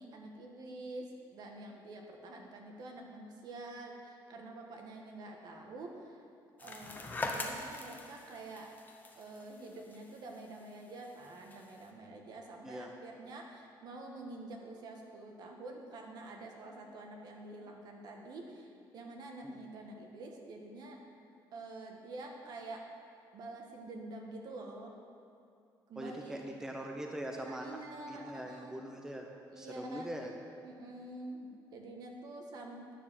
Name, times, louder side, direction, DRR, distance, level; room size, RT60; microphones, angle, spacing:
voice 1, 0.0-6.2 6.6-8.7 9.1-21.0 21.5-22.8 23.3-24.9 25.9-26.5 27.3-28.7 29.5-30.1 30.6-32.9, right 2 dB, 55° right, 2 dB, 1.4 m, -47 dB
sound 1, 6.6-11.8, left 2 dB, 20° left, 1.0 m, -43 dB
voice 2, 26.0-27.8 28.1-29.3 29.6-30.3, right 1 dB, 5° right, 2 dB, 0.7 m, -42 dB
9.9 x 6.5 x 7.3 m, 2.4 s
cardioid pair, 140°, 8 cm